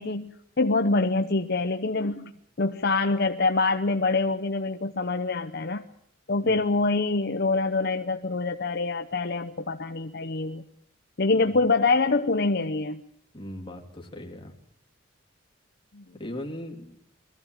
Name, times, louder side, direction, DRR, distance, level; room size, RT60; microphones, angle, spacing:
voice 1, 0.0-2.3 2.6-5.8 6.3-10.6 11.2-13.0 15.9-16.0, left 3 dB, 55° left, 6 dB, 0.8 m, -25 dB
voice 2, 13.3-14.5 16.1-16.9, left 1 dB, 25° left, 1 dB, 3.1 m, -38 dB
22.0 x 15.0 x 8.9 m, 0.71 s
head